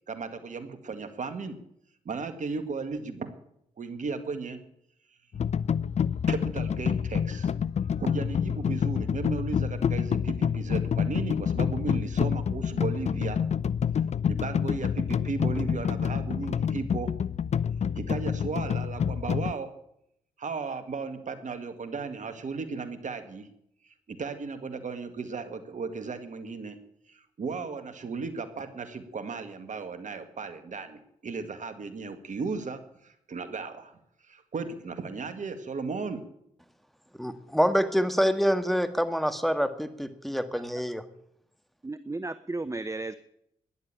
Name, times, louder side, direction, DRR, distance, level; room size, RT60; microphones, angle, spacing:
voice 1, 0.1-1.6 2.1-3.3 3.8-4.6 6.3-7.5 8.0-13.4 14.3-17.1 18.0-19.7 20.4-23.5 23.8-26.8 27.1-33.9 34.3-36.2, right 4 dB, 55° right, 9 dB, 2.0 m, -35 dB
sound 1, 5.3-19.5, left 7 dB, 50° left, 0.5 m, -28 dB
voice 2, 37.2-41.0, equal, ahead, 9 dB, 1.8 m, -26 dB
voice 3, 41.8-43.2, right 2 dB, 20° right, 13 dB, 0.8 m, -34 dB
13.0 x 11.0 x 9.1 m, 0.74 s
hypercardioid pair, 40°, 15 cm